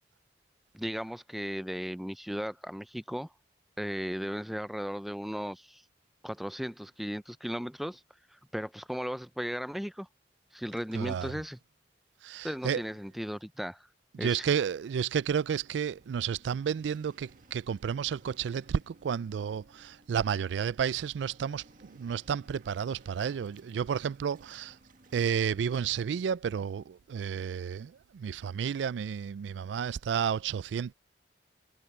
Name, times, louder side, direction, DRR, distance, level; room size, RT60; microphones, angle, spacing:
voice 1, 0.7-3.3 3.8-5.8 6.2-8.0 8.3-10.1 10.5-11.6 12.4-13.9 14.2-14.5, equal, ahead, 0.3 m, -36 dB
voice 2, 10.9-11.3 12.2-12.8 14.2-21.6 21.9-24.7 25.1-30.9, right 7 dB, 90° right, 0.3 m, -31 dB
Waves surf, 15.6-25.9, right 2 dB, 50° right, 1.8 m, -60 dB
head